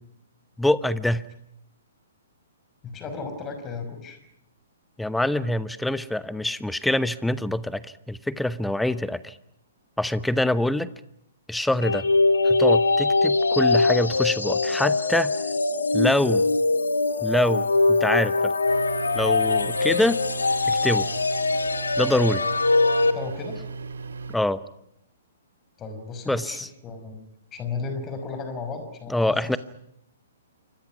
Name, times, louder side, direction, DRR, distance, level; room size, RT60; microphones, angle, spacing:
voice 1, 0.6-1.3 5.0-9.4 10.0-10.9 11.5-12.1 12.4-15.3 15.9-16.5 17.2-18.5 19.1-20.2 20.7-21.1 22.0-22.4 24.3-24.6 26.3-26.7 29.1-29.6, left 1 dB, 5° left, 17 dB, 0.9 m, -25 dB
voice 2, 2.8-4.2 23.1-23.6 25.8-27.2 27.5-29.6, left 4 dB, 20° left, 7 dB, 5.5 m, -34 dB
sound 1, 11.8-23.1, left 3 dB, 80° left, 1.8 m, -22 dB
sound 2, 18.7-24.4, right 4 dB, 70° right, 2.6 m, -37 dB
28.5 x 25.0 x 6.1 m, 0.77 s
figure-of-eight pair, 120°, 0 cm